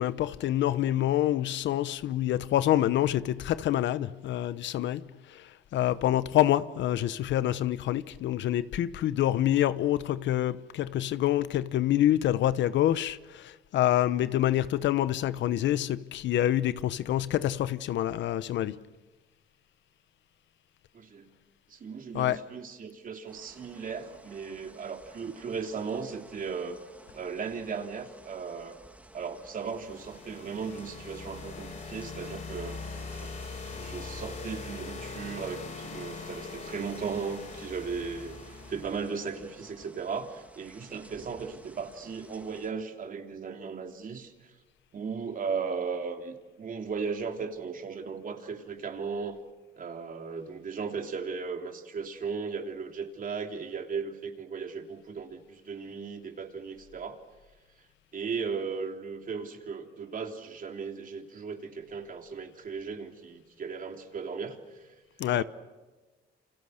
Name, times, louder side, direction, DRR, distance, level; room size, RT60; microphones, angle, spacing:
voice 1, 0.0-18.8 22.1-22.4 65.2-65.4, left 12 dB, 75° left, 1.0 m, -27 dB
voice 2, 20.9-21.3 21.7-26.8 27.1-28.7 29.1-32.8 33.2-33.3 33.7-38.4 38.7-44.5 44.9-49.4 49.7-57.2 58.1-64.9 65.3-65.4, right 5 dB, 45° right, 3.2 m, -36 dB
sound 1, 23.3-42.7, right 1 dB, 10° right, 2.8 m, -54 dB
sound 2, 29.6-39.4, left 4 dB, 40° left, 6.7 m, -42 dB
30.0 x 26.5 x 6.6 m
cardioid pair, 100°, 19 cm